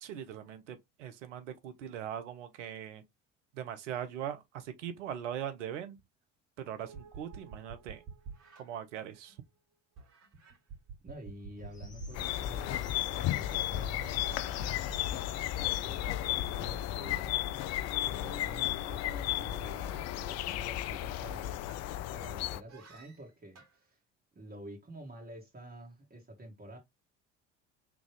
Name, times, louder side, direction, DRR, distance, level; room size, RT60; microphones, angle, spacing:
voice 1, 0.0-3.0 3.5-6.0 6.6-8.0 8.6-9.4, right 10 dB, 80° right, 0.9 m, -40 dB
sound 1, 6.8-9.5 9.9-22.2 22.7-23.8, right 6 dB, 45° right, 2.6 m, -53 dB
voice 2, 11.0-14.8 15.8-17.5 18.0-21.5 22.1-24.0 24.4-26.8, right 1 dB, 25° right, 2.3 m, -49 dB
sound 2, 11.6-17.1, left 6 dB, 20° left, 1.4 m, -51 dB
sound 3, 12.1-22.6, left 13 dB, 45° left, 0.4 m, -34 dB
3.6 x 3.5 x 3.4 m
hypercardioid pair, 65°, 36 cm